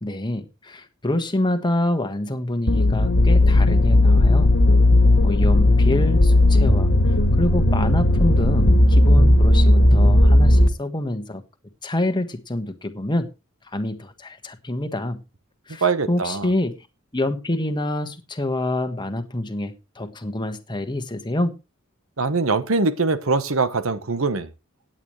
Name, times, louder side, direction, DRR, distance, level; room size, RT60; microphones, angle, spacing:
voice 1, 0.0-4.5 5.2-11.4 11.8-13.3 13.7-15.2 15.7-16.8 17.1-21.6, left 1 dB, 20° left, 1.3 m, -27 dB
sound 1, 2.7-10.7, left 1 dB, 60° left, 1.7 m, -15 dB
voice 2, 15.8-16.5 22.2-24.5, right 4 dB, 75° right, 1.1 m, -22 dB
17.5 x 9.0 x 3.2 m
head